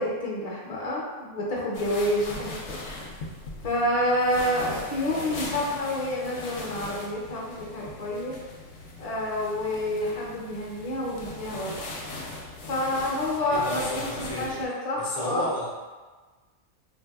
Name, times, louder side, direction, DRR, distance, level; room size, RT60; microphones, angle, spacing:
voice 1, 0.0-2.8 3.6-8.3 9.0-11.8 12.7-15.5, left 1 dB, 40° left, -4 dB, 0.6 m, -28 dB
sound 1, 1.7-14.7, left 2 dB, 70° left, 0.9 m, -39 dB
voice 2, 13.5-14.6 15.0-15.7, left 1 dB, 90° left, -3 dB, 0.3 m, -33 dB
3.5 x 2.6 x 2.3 m, 1.3 s
omnidirectional pair, 1.3 m